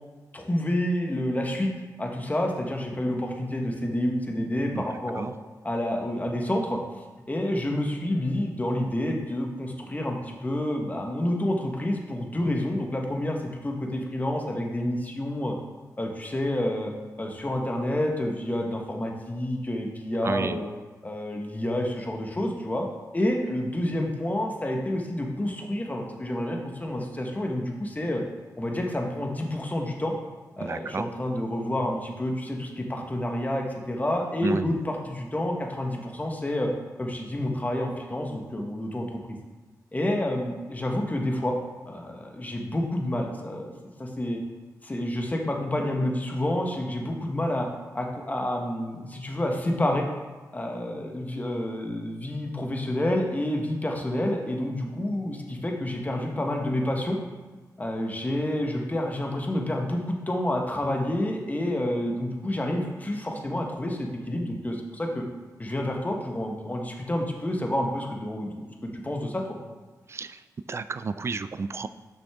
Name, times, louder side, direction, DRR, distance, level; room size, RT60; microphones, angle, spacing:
voice 1, 0.3-1.7 2.0-5.3 5.6-6.8 7.3-15.6 16.0-16.9 17.2-20.7 21.0-22.9 23.1-28.2 28.6-30.1 30.6-36.7 37.0-39.4 39.9-41.6 41.9-43.7 44.0-44.4 44.8-47.7 47.9-50.1 50.5-57.2 57.8-65.2 65.6-69.6, left 1 dB, 25° left, 1 dB, 1.3 m, -29 dB
voice 2, 20.2-20.6 30.6-31.1 34.4-34.7 70.1-70.4 70.7-71.9, right 4 dB, 40° right, 12 dB, 0.3 m, -31 dB
6.3 x 6.0 x 3.6 m, 1.3 s
cardioid pair, 65°, 7 cm